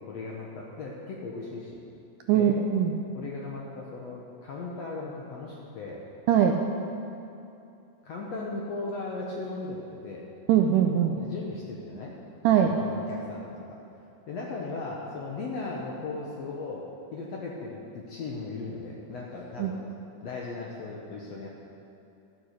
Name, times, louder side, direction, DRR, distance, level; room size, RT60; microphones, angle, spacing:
voice 1, 0.0-1.8 2.3-2.6 3.1-6.0 8.0-10.2 11.1-12.1 12.7-13.8 14.3-16.8 17.1-19.9 20.2-21.5, left 3 dB, 65° left, -3 dB, 1.7 m, -37 dB
voice 2, 2.3-2.9 6.3-6.6 10.5-11.2 12.4-12.7 19.6-19.7, right 9 dB, 80° right, 3 dB, 2.0 m, -21 dB
13.0 x 7.9 x 6.5 m, 2.8 s
omnidirectional pair, 4.1 m